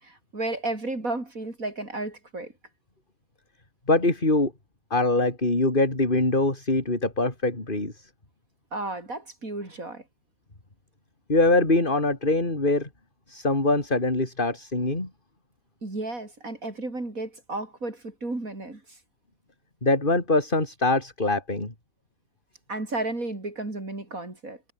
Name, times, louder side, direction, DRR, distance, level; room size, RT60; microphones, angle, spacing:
voice 1, 0.0-2.5 8.7-10.0 15.8-19.0 22.7-24.6, right 2 dB, 55° right, 5.3 m, -33 dB
voice 2, 3.9-4.5 4.9-8.1 11.3-12.9 13.3-15.1 19.8-21.7, left 2 dB, 30° left, 4.4 m, -23 dB
omnidirectional pair, 1.8 m